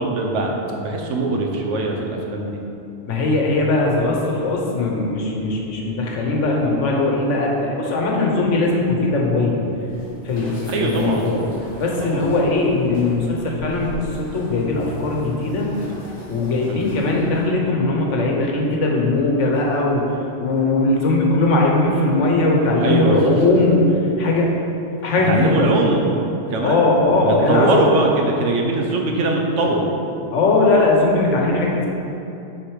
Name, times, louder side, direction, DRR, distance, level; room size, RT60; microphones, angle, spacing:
voice 1, 0.0-2.6 10.7-11.3 12.0-12.3 16.7-16.9 22.8-23.2 25.3-26.1 26.5-27.0 27.2-29.8, right 2 dB, 85° right, 1 dB, 1.1 m, -21 dB
voice 2, 3.1-9.6 10.2-11.4 11.8-15.7 16.3-20.1 20.4-24.5 25.0-25.7 26.6-27.9 30.3-31.9, left 2 dB, 90° left, -1 dB, 1.3 m, -19 dB
sound 1, 9.6-17.5, equal, 65° left, 1.6 m, -40 dB
6.5 x 3.9 x 4.8 m, 2.9 s
omnidirectional pair, 1.2 m